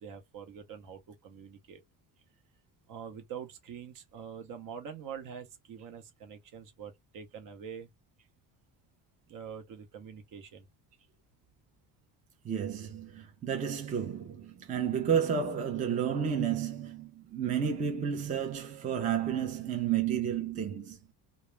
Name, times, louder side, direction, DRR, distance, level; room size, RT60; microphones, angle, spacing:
voice 1, 0.0-1.8 2.9-7.9 9.3-10.7, right 7 dB, 50° right, 0.7 m, -45 dB
voice 2, 12.4-21.0, right 8 dB, 20° right, 0.4 m, -31 dB
2.3 x 2.0 x 3.0 m
cardioid pair, 150°, 40 cm